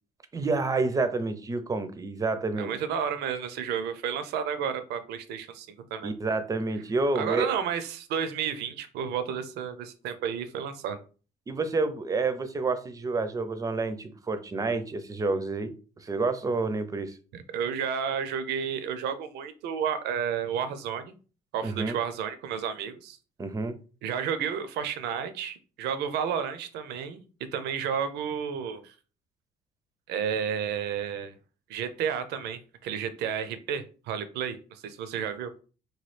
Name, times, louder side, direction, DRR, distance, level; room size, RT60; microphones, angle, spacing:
voice 1, 0.3-2.7 6.0-7.5 11.5-15.7 16.0-17.2 21.6-22.0 23.4-23.8, right 3 dB, 20° right, 10 dB, 0.4 m, -29 dB
voice 2, 2.6-6.1 7.1-11.0 17.3-21.1 21.5-23.2 24.0-27.2 27.5-28.9 30.1-31.4 31.7-35.5, right 7 dB, 80° right, 11 dB, 0.5 m, -31 dB
3.0 x 2.3 x 3.2 m, 0.36 s
cardioid pair, 110°, 17 cm